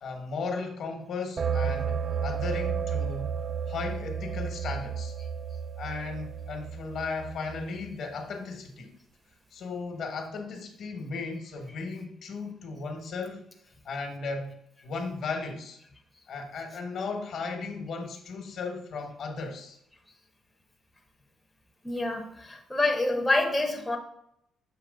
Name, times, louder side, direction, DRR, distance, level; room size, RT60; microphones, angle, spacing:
voice 1, 0.0-3.3 3.7-5.1 5.8-8.9 9.5-13.4 13.8-14.5 14.8-15.8 16.3-19.8, left 4 dB, 60° left, 4 dB, 1.2 m, -36 dB
sound 1, 1.4-7.9, right 6 dB, 35° right, 0.3 m, -32 dB
voice 2, 21.8-24.0, left 2 dB, 10° left, 2 dB, 0.7 m, -27 dB
6.8 x 3.0 x 5.1 m, 0.74 s
cardioid pair, 135°, 0 cm